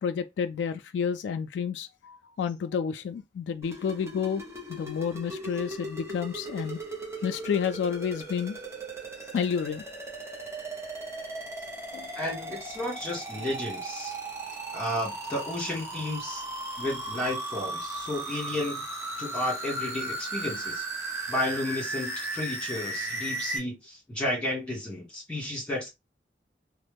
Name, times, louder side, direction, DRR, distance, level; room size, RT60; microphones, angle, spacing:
voice 1, 0.0-4.4 4.7-6.8 7.2-8.6 9.3-9.8 11.9-12.1, left 7 dB, 90° left, 0.3 m, -30 dB
sound 1, 3.6-23.6, right 2 dB, 15° right, 0.8 m, -37 dB
voice 2, 12.2-14.1 14.7-16.4 16.8-18.8 19.2-20.8 21.3-25.9, left 1 dB, 5° left, 1.9 m, -32 dB
3.1 x 2.0 x 3.4 m
head